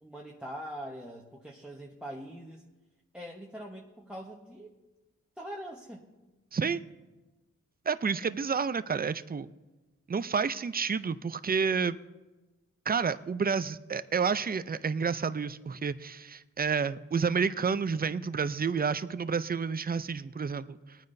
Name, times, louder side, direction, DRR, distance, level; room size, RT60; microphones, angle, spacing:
voice 1, 0.0-2.6 3.1-4.7 5.4-6.0, equal, 5° right, -1 dB, 1.1 m, -43 dB
voice 2, 6.5-6.8 7.9-9.5 10.1-12.0 12.9-21.0, right 5 dB, 30° right, 14 dB, 0.5 m, -30 dB
21.0 x 9.3 x 2.7 m, 1.1 s
wide cardioid pair, 65°, 33 cm